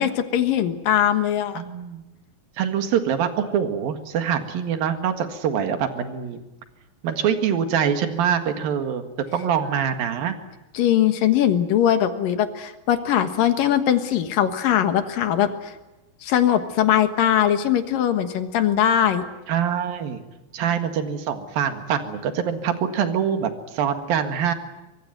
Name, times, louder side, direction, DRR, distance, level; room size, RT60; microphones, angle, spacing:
voice 1, 0.0-1.6 10.7-15.7 16.2-19.2, left 10 dB, 75° left, 9 dB, 3.1 m, -21 dB
voice 2, 1.6-2.0 2.6-6.4 7.0-9.1 9.3-10.4 19.5-20.2 20.5-24.5, right 8 dB, 80° right, 7 dB, 3.6 m, -24 dB
24.5 x 22.0 x 9.4 m, 1.0 s
omnidirectional pair, 4.1 m